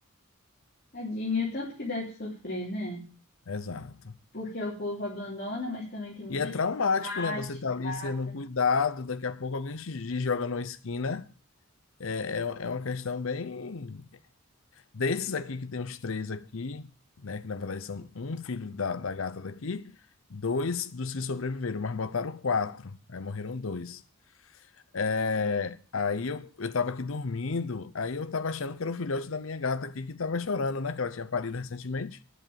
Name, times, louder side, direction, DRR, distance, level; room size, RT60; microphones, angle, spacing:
voice 1, 0.9-3.0 4.3-6.5 7.0-7.4 7.8-8.3, left 2 dB, 45° left, 3.2 m, -34 dB
voice 2, 3.5-4.1 6.3-11.3 12.0-14.1 14.9-16.9 17.2-19.9 20.3-24.0 24.9-32.2, left 4 dB, 80° left, 0.7 m, -31 dB
10.0 x 8.1 x 8.7 m
head